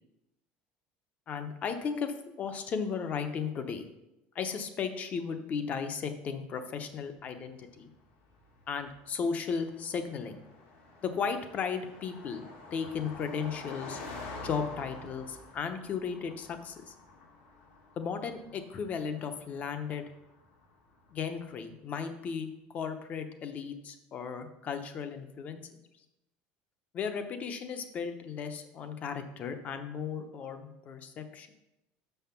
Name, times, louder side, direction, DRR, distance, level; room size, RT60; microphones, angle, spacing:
voice 1, 1.3-3.9 4.3-7.9 8.7-10.4 11.0-12.4 12.7-14.0 14.4-16.9 18.0-20.1 21.1-25.6 26.9-31.5, left 6 dB, 35° left, 8 dB, 0.8 m, -35 dB
Car passing by, 7.5-21.2, left 3 dB, 80° left, 2.1 m, -48 dB
6.5 x 5.7 x 5.8 m, 0.92 s
cardioid pair, 145°, 4 cm